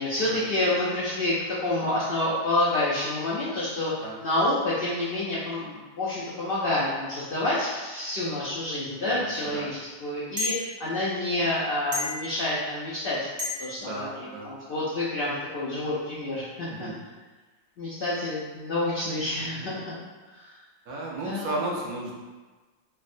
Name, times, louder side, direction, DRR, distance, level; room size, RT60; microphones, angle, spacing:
voice 1, 0.0-3.9 4.2-13.2 13.6-14.1 14.5-16.9 17.8-19.9 20.3-20.4 21.2-21.6, left 1 dB, 80° left, -8 dB, 0.5 m, -28 dB
voice 2, 9.0-9.7 13.8-14.5 16.7-17.0 19.4-19.7 20.9-22.1, right 2 dB, 70° right, -3 dB, 1.0 m, -34 dB
sound 1, 10.4-10.6 11.9-12.2 13.4-13.6, left 3 dB, 50° right, 0.5 m, -29 dB
3.3 x 2.0 x 2.5 m, 1.3 s
omnidirectional pair, 1.6 m